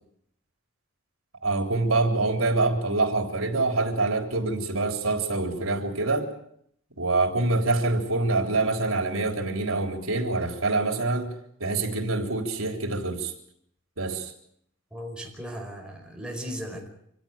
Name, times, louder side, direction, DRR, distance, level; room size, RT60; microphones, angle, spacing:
voice 1, 1.4-6.3 7.0-11.3 11.6-13.3 14.0-14.3, right 3 dB, 80° right, 5 dB, 3.7 m, -25 dB
voice 2, 14.9-16.9, equal, 5° right, 2 dB, 5.2 m, -37 dB
25.5 x 16.5 x 9.0 m, 0.70 s
head